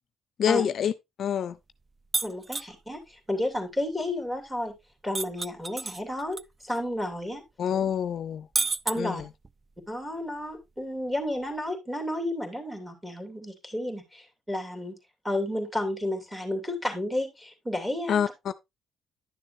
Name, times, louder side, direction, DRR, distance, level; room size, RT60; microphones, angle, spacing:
voice 1, 0.4-0.9 1.2-1.6 7.6-8.5 8.9-9.3 18.1-18.3, left 8 dB, 60° left, 0.4 m, -26 dB
sound 1, 2.1-2.7 5.1-6.4 6.8-6.9 8.6-9.5, right 4 dB, 30° right, 0.3 m, -30 dB
voice 2, 2.2-4.7 5.0-7.4 8.8-9.2 9.9-14.9 15.2-18.2, left 1 dB, 5° right, 2.6 m, -32 dB
10.5 x 6.7 x 2.6 m
cardioid pair, 90°, 0 cm